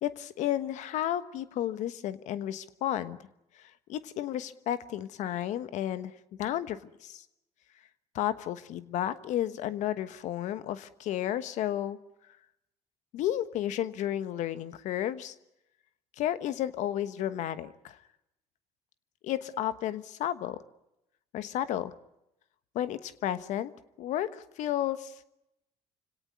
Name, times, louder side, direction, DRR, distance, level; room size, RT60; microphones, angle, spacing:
voice 1, 0.0-3.2 3.6-6.1 6.4-7.2 8.1-12.0 13.1-15.3 16.2-18.0 19.2-20.6 21.3-21.9 22.7-23.7 24.0-25.2, left 11 dB, 70° left, 13 dB, 1.2 m, -32 dB
25.0 x 17.5 x 9.4 m, 0.88 s
supercardioid pair, 80°, 13 cm